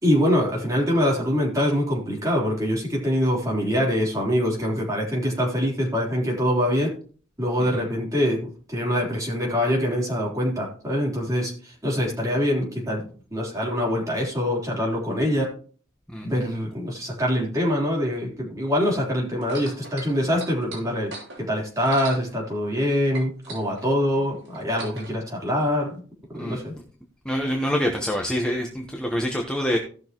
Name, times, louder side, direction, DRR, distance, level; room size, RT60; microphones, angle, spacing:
voice 1, 0.0-6.9 7.4-15.5 16.2-26.0 26.3-26.7, equal, 15° right, -3 dB, 3.7 m, -24 dB
sound 1, 19.4-22.9 23.1-25.1 25.9-26.0, right 3 dB, 65° right, 5.5 m, -40 dB
voice 2, 27.2-29.8, equal, 5° left, 0 dB, 1.1 m, -26 dB
17.0 x 6.3 x 3.0 m, 0.42 s
head